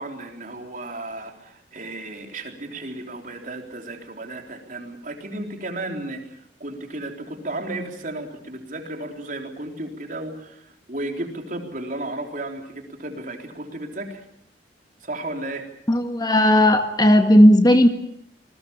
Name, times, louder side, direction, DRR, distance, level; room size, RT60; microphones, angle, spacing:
voice 1, 0.0-14.2 15.0-15.7, right 2 dB, 45° right, 3 dB, 3.8 m, -34 dB
voice 2, 15.9-17.9, equal, 20° left, 6 dB, 1.7 m, -15 dB
27.5 x 20.5 x 7.2 m, 0.71 s
head